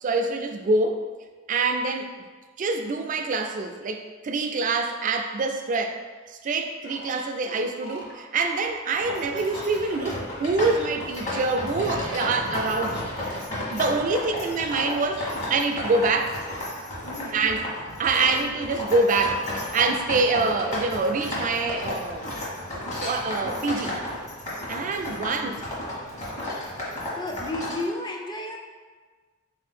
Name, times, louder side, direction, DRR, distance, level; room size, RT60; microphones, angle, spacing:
voice 1, 0.0-1.0 1.5-2.1 2.6-6.0 6.3-13.2 13.7-16.4 17.3-17.7 18.0-22.3 23.0-23.9 24.7-25.6, right 3 dB, 40° right, 5 dB, 0.3 m, -25 dB
sound 1, 6.8-13.3 13.7-16.6, left 1 dB, 55° left, 0.7 m, -43 dB
sound 2, 8.9-27.8, left 1 dB, 40° left, 1.3 m, -33 dB
voice 2, 17.0-17.6 18.1-18.5 25.0-25.5 27.2-28.6, left 1 dB, 20° left, 1 dB, 0.5 m, -34 dB
3.9 x 2.8 x 4.2 m, 1.4 s
head